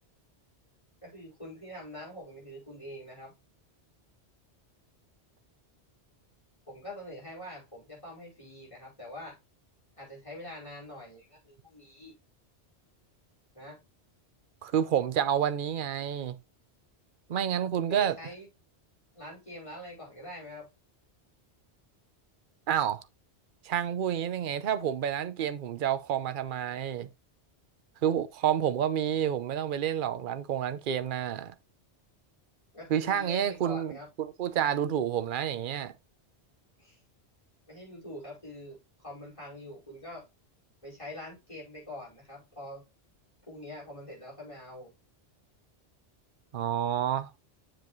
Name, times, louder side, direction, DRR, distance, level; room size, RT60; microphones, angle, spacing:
voice 1, 1.0-3.3 6.7-9.4 10.0-12.1 13.5-13.8 17.7-18.5 19.1-20.7 32.7-34.1 36.8-37.0 37.7-40.2 40.8-42.8 43.5-44.9, left 1 dB, 30° left, 5.2 m, -44 dB
voice 2, 14.6-16.4 17.3-18.1 22.7-23.0 23.6-27.1 28.0-31.5 32.9-35.9 46.5-47.3, right 9 dB, 55° right, 0.8 m, -29 dB
7.7 x 7.2 x 3.1 m
omnidirectional pair, 1.1 m